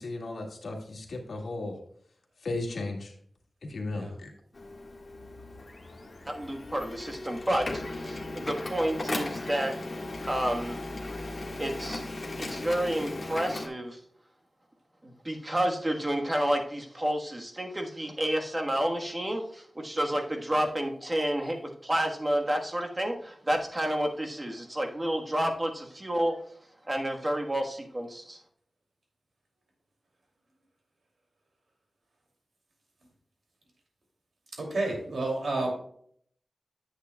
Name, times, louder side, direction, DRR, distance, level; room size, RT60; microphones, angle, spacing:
voice 1, 0.0-1.8 2.4-3.1 3.7-4.3, left 2 dB, 80° left, 1.8 m, -35 dB
Printer, 4.5-13.7, left 2 dB, 40° left, 1.5 m, -37 dB
voice 2, 6.3-9.7 10.3-10.8 11.6-12.0 12.4-14.0 15.0-26.3 26.9-28.4, right 1 dB, 25° right, 1.3 m, -30 dB
voice 3, 34.6-35.7, right 2 dB, 75° right, 2.6 m, -30 dB
10.0 x 8.3 x 2.2 m
wide cardioid pair, 105°, 0 cm